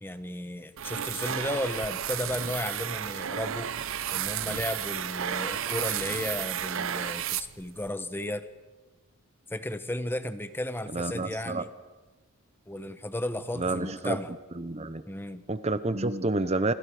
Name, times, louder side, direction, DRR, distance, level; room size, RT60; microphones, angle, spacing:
voice 1, 0.0-3.7 4.1-8.5 9.5-11.7 12.7-14.3 15.1-15.4, left 1 dB, 10° left, 11 dB, 0.9 m, -34 dB
sound 1, 0.8-7.9, right 9 dB, 60° right, 0.6 m, -32 dB
voice 2, 10.9-11.6 13.6-14.2 14.6-15.0 15.5-16.7, right 2 dB, 30° right, 13 dB, 0.7 m, -29 dB
28.0 x 25.5 x 5.0 m, 1.2 s
head